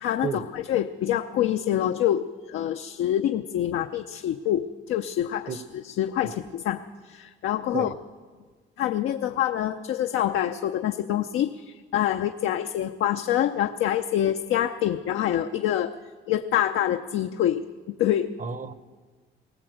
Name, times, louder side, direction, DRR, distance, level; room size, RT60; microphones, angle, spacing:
voice 1, 0.0-7.9 8.8-15.9 16.3-18.3, left 11 dB, 80° left, 6 dB, 0.7 m, -26 dB
voice 2, 18.4-18.8, right 6 dB, 40° right, 14 dB, 1.0 m, -32 dB
20.0 x 17.5 x 7.9 m, 1.5 s
cardioid pair, 90°, 20 cm